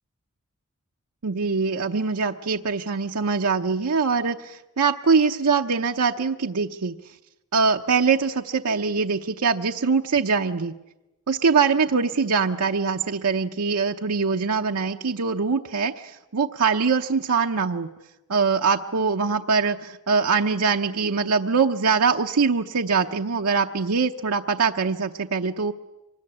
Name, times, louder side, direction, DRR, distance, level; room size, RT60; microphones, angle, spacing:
voice 1, 1.2-6.9 7.5-10.7 11.3-17.9 18.3-25.7, right 5 dB, 85° right, 3 dB, 0.8 m, -23 dB
25.0 x 21.0 x 9.8 m, 1.0 s
head